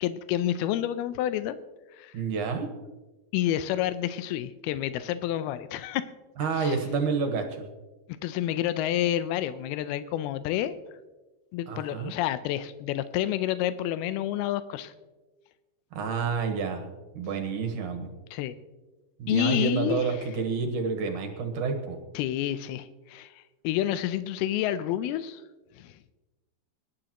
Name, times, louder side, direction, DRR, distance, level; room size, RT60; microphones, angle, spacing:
voice 1, 0.0-1.6 1.9-2.1 3.3-6.1 6.5-6.8 8.2-10.8 11.5-14.9 18.3-18.6 19.3-20.1 22.1-23.3 23.6-25.4 25.8-25.9, left 12 dB, 90° left, 13 dB, 2.6 m, -29 dB
voice 2, 2.1-2.7 6.4-7.7 11.7-12.1 15.9-16.8 17.1-18.1 19.2-22.0, right 5 dB, 65° right, 4 dB, 2.4 m, -29 dB
24.5 x 11.5 x 3.0 m, 1.2 s
omnidirectional pair, 4.4 m